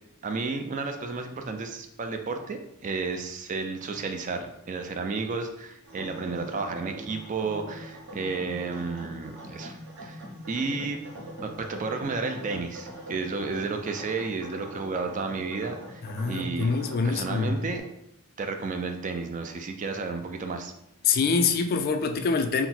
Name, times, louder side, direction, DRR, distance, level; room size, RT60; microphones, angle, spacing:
voice 1, 0.2-10.2 10.5-11.0 11.4-16.0 16.3-16.7 17.0-17.8 18.4-20.7, right 4 dB, 35° right, 6 dB, 0.4 m, -32 dB
sound 1, 5.8-17.8, equal, 55° right, 0.9 m, -43 dB
voice 2, 16.0-17.6 21.0-22.7, left 5 dB, 45° left, 7 dB, 0.3 m, -25 dB
3.9 x 2.0 x 4.2 m, 0.79 s
head